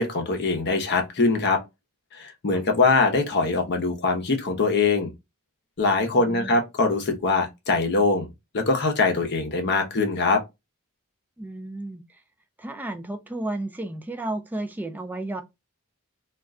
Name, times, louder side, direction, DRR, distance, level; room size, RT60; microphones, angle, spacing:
voice 1, 0.0-1.6 2.1-5.1 5.8-8.3 8.5-10.4, left 3 dB, 50° left, 0.7 m, -22 dB
voice 2, 6.1-6.6 11.4-12.2 12.6-15.4, right 2 dB, 10° right, 0.3 m, -33 dB
2.3 x 2.2 x 3.5 m
head